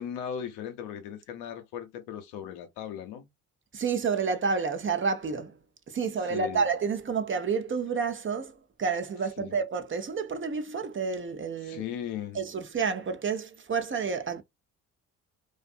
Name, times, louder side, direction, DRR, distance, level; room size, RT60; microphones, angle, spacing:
voice 1, 0.0-3.3 6.3-6.7 9.4-9.6 11.6-12.4, left 9 dB, 80° left, 0.7 m, -37 dB
voice 2, 3.7-5.6 5.9-11.8 12.3-14.4, right 5 dB, 30° right, 0.6 m, -29 dB
2.6 x 2.4 x 2.4 m
hypercardioid pair, 55°, 38 cm